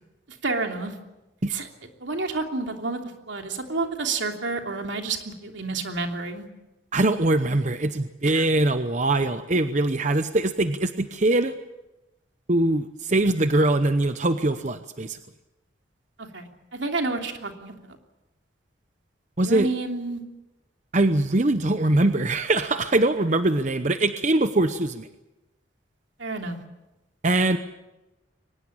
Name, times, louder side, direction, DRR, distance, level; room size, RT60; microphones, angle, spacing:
voice 1, 0.4-0.9 1.5-1.7 2.0-3.0 3.3-6.4 8.2-8.4 16.2-17.8 19.4-20.2 26.2-26.6, right 3 dB, 75° right, 4 dB, 3.1 m, -29 dB
voice 2, 6.9-11.5 12.5-15.2 19.4-19.7 20.9-25.1 27.2-27.6, right 2 dB, 40° right, 9 dB, 0.9 m, -22 dB
23.5 x 20.0 x 8.8 m, 0.99 s
head